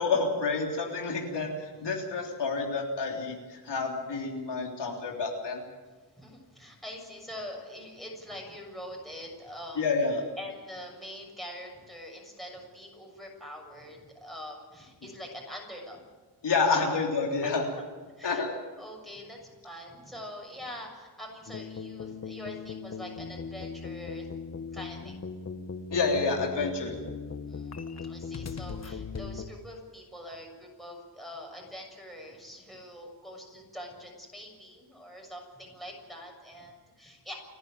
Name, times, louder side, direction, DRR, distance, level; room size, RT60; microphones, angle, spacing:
voice 1, 0.0-5.6 9.8-10.2 16.4-17.7 18.2-18.5 25.9-27.0, left 4 dB, 75° left, 0 dB, 3.5 m, -29 dB
voice 2, 6.1-9.8 10.4-16.0 16.7-17.1 17.4-17.6 18.2-18.4 18.8-24.3 24.7-25.1 27.5-37.3, left 1 dB, ahead, 0 dB, 6.7 m, -44 dB
sound 1, 21.5-29.4, left 5 dB, 40° left, 1.3 m, -39 dB
29.5 x 11.0 x 9.0 m, 1.4 s
wide cardioid pair, 110°, 42 cm